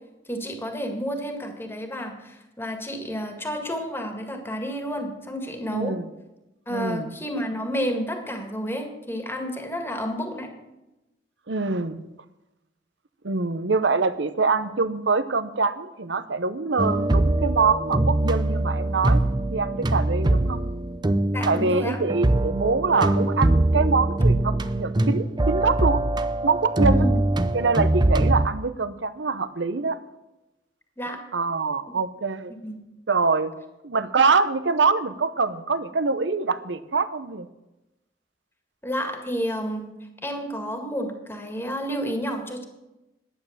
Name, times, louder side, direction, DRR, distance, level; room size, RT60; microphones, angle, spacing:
voice 1, 0.3-5.9 6.7-10.5 21.3-22.0 26.8-27.2 31.0-31.2 32.6-32.8 38.8-39.9 40.2-42.6, equal, 15° left, 4 dB, 1.9 m, -30 dB
voice 2, 5.7-6.1 6.7-7.1 11.5-12.0 13.2-19.2 19.5-20.6 21.4-26.0 26.4-27.1 27.5-30.0 31.3-32.5 33.1-33.5 33.8-37.5, right 4 dB, 85° right, 13 dB, 0.8 m, -24 dB
sound 1, 16.8-28.5, right 1 dB, 25° right, 0.6 m, -22 dB
11.5 x 9.3 x 7.3 m, 0.97 s
head